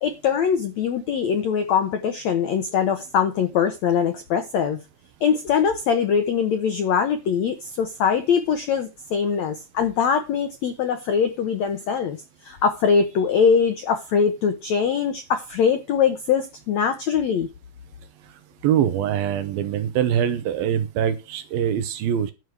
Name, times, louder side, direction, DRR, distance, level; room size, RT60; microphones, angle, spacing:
voice 1, 0.0-4.8 5.2-17.5, left 7 dB, 80° left, 1.5 m, -22 dB
voice 2, 18.6-22.3, right 9 dB, 75° right, 2.6 m, -23 dB
11.0 x 4.8 x 7.9 m
omnidirectional pair, 4.7 m